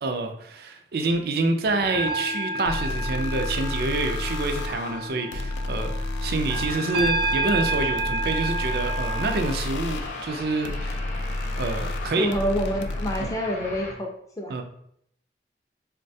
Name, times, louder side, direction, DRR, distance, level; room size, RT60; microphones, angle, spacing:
voice 1, 0.0-11.0 11.6-12.3 13.2-13.3 14.5-14.6, right 3 dB, 60° right, 6 dB, 0.4 m, -27 dB
sound 1, 1.5-9.4, right 2 dB, 90° right, 0.8 m, -30 dB
sound 2, 2.7-13.3, left 2 dB, 90° left, 0.3 m, -31 dB
sound 3, 8.7-13.9, left 1 dB, 40° left, 0.8 m, -39 dB
voice 2, 12.2-14.1 14.4-14.5, equal, 20° left, 1 dB, 0.4 m, -27 dB
3.8 x 2.2 x 2.6 m, 0.70 s
head